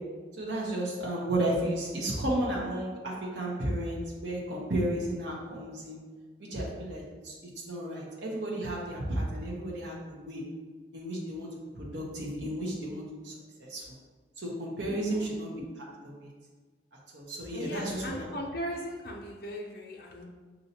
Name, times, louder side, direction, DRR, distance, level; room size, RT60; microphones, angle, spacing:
voice 1, 0.4-6.0 6.4-7.3 7.7-10.4 10.9-11.5 11.7-13.3 13.7-13.8 14.4-16.3 17.1-18.3, right 1 dB, 75° right, -4 dB, 0.9 m, -33 dB
voice 2, 14.8-15.3 17.5-20.2, equal, 55° left, -1 dB, 0.5 m, -38 dB
5.3 x 2.7 x 2.8 m, 1.4 s
head